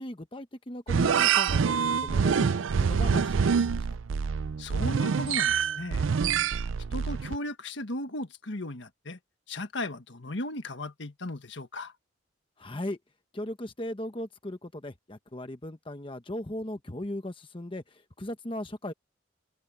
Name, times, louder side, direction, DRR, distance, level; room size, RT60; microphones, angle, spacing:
voice 1, 0.0-3.9 12.6-13.0 13.3-18.9, left 1 dB, 25° left, 1.1 m, -38 dB
sound 1, 0.9-7.4, right 6 dB, 85° right, 0.5 m, -26 dB
voice 2, 4.6-6.1 6.9-9.2 9.5-11.9, left 1 dB, 65° left, 1.6 m, -36 dB
head